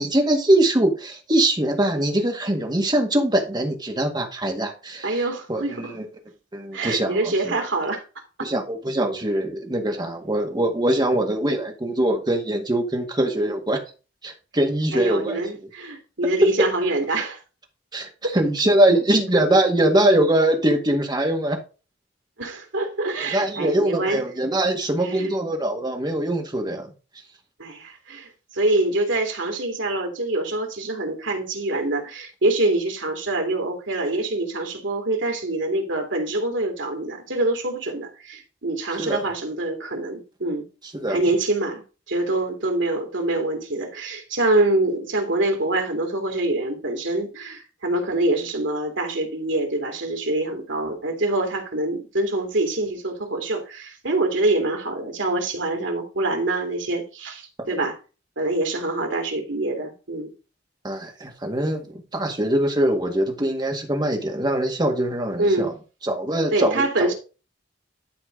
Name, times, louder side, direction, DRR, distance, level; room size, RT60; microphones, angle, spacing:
voice 1, 0.0-5.2 5.5-6.1 6.5-7.6 8.4-13.8 14.2-15.4 17.9-21.6 23.2-26.9 39.0-39.2 41.0-41.2 57.6-57.7 60.8-61.9 62.1-65.7 66.0-67.1, right 1 dB, 25° right, 1.9 m, -22 dB
voice 2, 5.0-5.9 6.7-8.0 8.4-8.5 14.9-17.4 18.2-18.4 22.4-24.2 25.0-25.3 27.6-40.7 41.1-41.8 42.1-58.0 58.4-60.3 65.4-65.7 66.5-67.1, right 2 dB, 80° right, 2.6 m, -25 dB
12.0 x 4.4 x 3.9 m
head